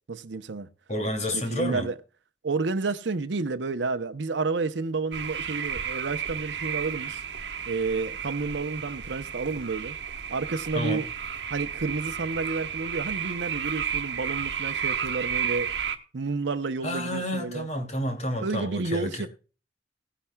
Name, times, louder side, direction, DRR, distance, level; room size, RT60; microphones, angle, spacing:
voice 1, 0.1-0.7 1.3-2.0 2.4-7.2 7.7-9.9 10.3-11.1 11.4-15.7 16.1-17.7 18.4-19.3, right 4 dB, 90° right, 0.7 m, -30 dB
voice 2, 0.9-1.9 10.7-11.0 16.8-19.3, equal, 40° left, 2.7 m, -30 dB
sound 1, 5.1-16.0, right 8 dB, 70° right, 1.3 m, -32 dB
18.0 x 10.0 x 2.3 m
head